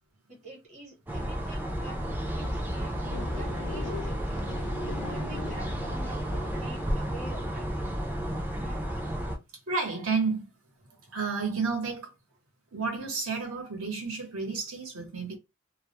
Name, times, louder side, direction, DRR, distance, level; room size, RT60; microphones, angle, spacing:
voice 1, 0.3-2.0 2.3-7.7 8.6-8.9, right 2 dB, 30° right, 0.9 m, -47 dB
sound 1, 1.1-9.4, equal, 10° right, 0.3 m, -32 dB
sound 2, 3.0-7.1, left 8 dB, 85° left, 0.3 m, -43 dB
voice 2, 9.7-10.5 11.1-12.1 12.7-15.4, right 4 dB, 70° right, 0.9 m, -31 dB
2.2 x 2.0 x 2.8 m
head